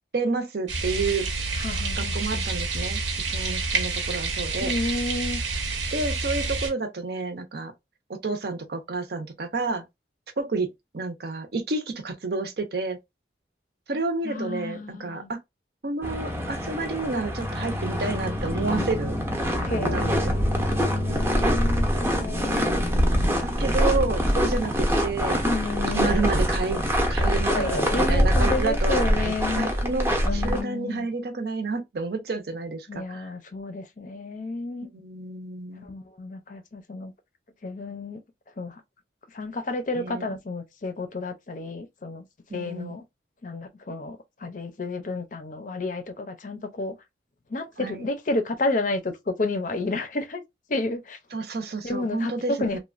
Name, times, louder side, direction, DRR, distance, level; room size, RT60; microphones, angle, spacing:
voice 1, 0.1-1.3 2.0-3.0 3.3-4.7 5.9-7.7 8.1-9.8 10.4-10.7 10.9-13.0 13.9-15.4 15.8-19.2 19.6-20.4 21.1-21.5 23.4-25.4 25.9-26.8 27.1-29.2 29.6-33.3 34.9-35.9 39.9-40.3 42.5-43.0 47.8-48.1 51.3-52.8, right 3 dB, 55° right, 0.6 m, -30 dB
sound 1, 0.7-6.7, right 3 dB, 90° right, 0.9 m, -28 dB
voice 2, 1.5-2.4 4.6-5.4 14.2-15.3 19.6-22.7 23.2-23.7 25.4-26.4 27.5-29.7 30.2-31.1 32.9-34.9 35.8-37.1 37.6-38.2 38.6-38.8 39.3-42.3 42.5-43.0 43.4-47.0 47.5-50.4 50.7-51.2 51.8-52.8, left 2 dB, 45° left, 0.5 m, -31 dB
sound 2, 16.0-30.6, equal, 15° right, 0.6 m, -24 dB
3.0 x 2.2 x 2.4 m
head